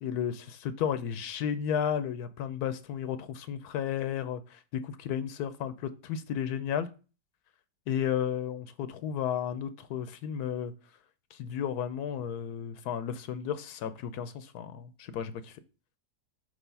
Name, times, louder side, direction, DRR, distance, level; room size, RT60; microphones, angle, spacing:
voice 1, 0.0-6.9 7.9-10.7 11.3-15.6, left 8 dB, 80° left, 1.1 m, -33 dB
6.1 x 3.4 x 5.3 m
omnidirectional pair, 1.7 m